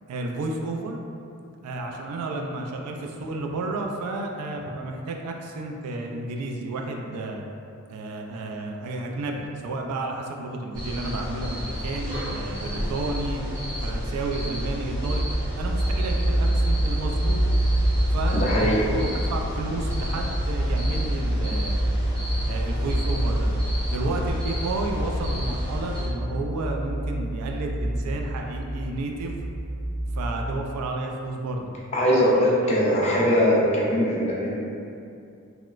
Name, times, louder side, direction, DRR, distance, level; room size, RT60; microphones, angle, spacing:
voice 1, 0.1-1.0 1.6-7.4 7.9-13.4 13.8-15.3 15.6-17.5 18.1-21.8 22.5-23.5 23.9-29.4 30.1-31.7 32.6-32.7, right 2 dB, 90° right, 6 dB, 0.3 m, -31 dB
sound 1, 10.7-26.1, equal, 20° right, 0.8 m, -30 dB
sound 2, 14.8-30.2, right 1 dB, 65° right, 0.8 m, -27 dB
voice 2, 18.4-18.8 31.9-34.6, equal, 30° left, -5 dB, 0.3 m, -21 dB
2.9 x 2.0 x 2.3 m, 2.5 s
head